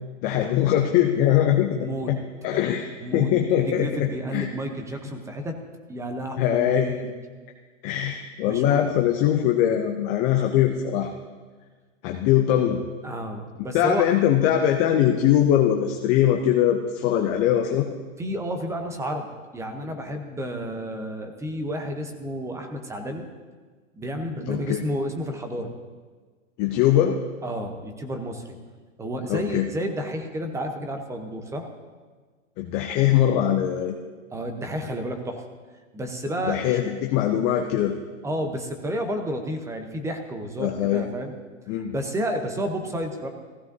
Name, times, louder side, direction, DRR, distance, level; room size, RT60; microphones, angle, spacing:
voice 1, 0.2-2.2 2.4-4.5 6.4-6.9 7.8-11.1 12.0-12.8 13.7-17.8 24.5-24.8 26.6-27.2 29.3-29.6 32.6-33.9 36.5-37.9 40.6-41.0 41.7-41.9, left 11 dB, 20° left, 3 dB, 0.4 m, -22 dB
voice 2, 1.7-2.1 3.0-3.3 3.6-5.5 5.9-7.1 8.5-8.8 13.0-14.1 18.2-23.2 24.0-25.7 27.4-28.4 29.0-31.7 34.3-35.4 35.9-36.8 38.2-41.3 41.7-43.3, equal, 5° right, 5 dB, 0.8 m, -31 dB
15.5 x 15.0 x 2.7 m, 1.4 s
hypercardioid pair, 130°, 39 cm